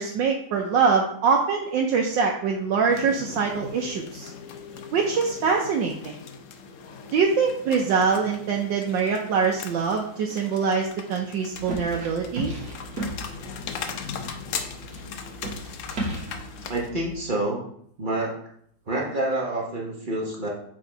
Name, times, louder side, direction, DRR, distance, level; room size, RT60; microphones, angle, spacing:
voice 1, 0.0-4.3 4.9-6.2 7.1-12.5, right 5 dB, 80° right, 0 dB, 1.4 m, -24 dB
sound 1, 2.9-16.9, left 6 dB, 85° left, 0.6 m, -39 dB
sound 2, 11.5-17.3, right 1 dB, 60° right, 1.8 m, -36 dB
voice 2, 16.7-17.6 18.0-18.4 18.9-20.5, right 1 dB, 35° right, -2 dB, 0.9 m, -27 dB
6.0 x 3.6 x 4.4 m, 0.67 s
omnidirectional pair, 2.0 m